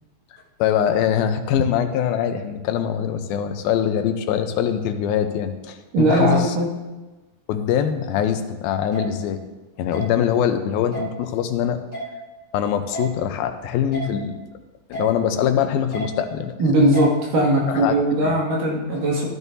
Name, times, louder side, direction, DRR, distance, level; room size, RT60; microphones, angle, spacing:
voice 1, 0.6-6.6 7.5-9.4 9.8-11.8 12.5-14.4 14.9-16.5 17.7-17.9 18.2-18.4, left 9 dB, 85° left, 8 dB, 2.6 m, -23 dB
voice 2, 5.9-6.7 16.6-19.3, right 1 dB, 65° right, -3 dB, 3.6 m, -19 dB
sound 1, 8.9-9.0 9.9-10.0 10.9-11.1 11.9-12.0 12.9-13.1 13.9-14.0 14.9-15.1 15.9-16.0 16.9-17.1, right 2 dB, 20° right, 4.7 m, -30 dB
14.0 x 12.5 x 2.7 m, 1.2 s
omnidirectional pair, 4.2 m